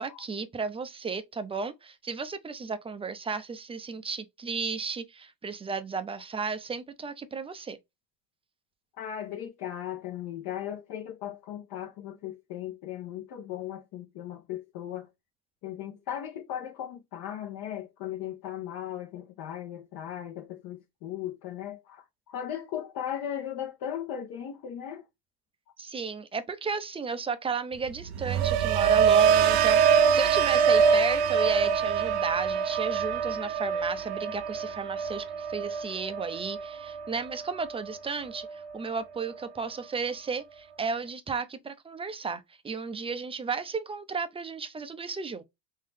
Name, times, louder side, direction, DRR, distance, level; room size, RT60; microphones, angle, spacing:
voice 1, 0.0-7.8 25.8-45.4, right 5 dB, 15° right, 0.5 m, -34 dB
voice 2, 9.0-15.1 15.6-25.0, left 10 dB, 50° left, 1.0 m, -37 dB
sound 1, 27.9-38.0 38.3-38.8, right 7 dB, 60° right, 0.6 m, -25 dB
3.8 x 3.0 x 3.4 m
supercardioid pair, 110°, 45 cm